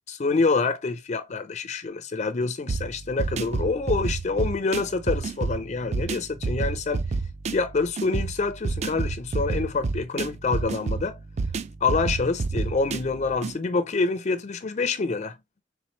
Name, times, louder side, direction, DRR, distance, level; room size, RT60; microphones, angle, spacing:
voice 1, 0.1-7.0 7.5-11.2 11.8-15.3, left 4 dB, 40° left, 0.4 m, -26 dB
sound 1, 2.7-13.6, right 4 dB, 35° right, 0.3 m, -29 dB
4.4 x 3.4 x 2.9 m
head